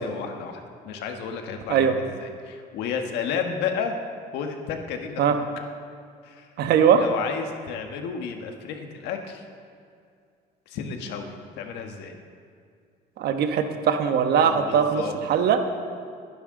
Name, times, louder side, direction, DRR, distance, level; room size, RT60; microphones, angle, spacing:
voice 1, 0.0-3.9 4.3-5.4 6.2-6.5 6.9-9.5 10.7-12.2 14.4-15.1, left 6 dB, 85° left, 4 dB, 1.4 m, -32 dB
voice 2, 6.6-7.0 13.2-15.0 15.3-15.6, right 8 dB, 70° right, 7 dB, 1.1 m, -20 dB
22.0 x 10.0 x 3.8 m, 2.3 s
cardioid pair, 110°, 17 cm